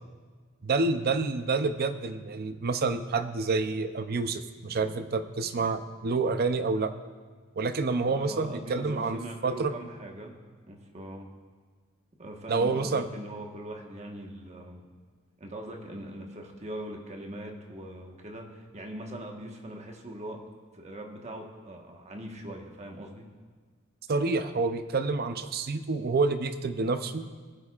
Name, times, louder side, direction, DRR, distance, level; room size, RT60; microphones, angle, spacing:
voice 1, 0.6-6.9 7.6-9.7 12.5-13.1 24.1-27.3, right 3 dB, 50° right, 10 dB, 0.5 m, -28 dB
voice 2, 8.1-10.3 10.7-11.3 12.2-14.8 15.4-20.4 20.7-23.3, right 1 dB, 35° right, 1 dB, 1.3 m, -41 dB
20.0 x 8.5 x 2.4 m, 1.5 s
head